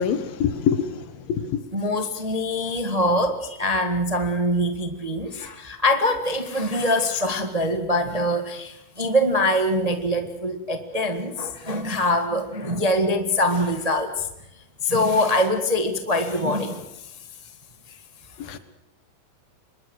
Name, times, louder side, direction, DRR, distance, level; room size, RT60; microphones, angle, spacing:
voice 1, 0.0-1.6 18.4-18.6, left 7 dB, 90° left, 3.4 m, -25 dB
voice 2, 1.7-14.3 14.8-17.1 17.9-18.0 18.4-18.5, left 1 dB, 25° right, 0.8 m, -24 dB
26.0 x 21.5 x 6.5 m
omnidirectional pair, 4.1 m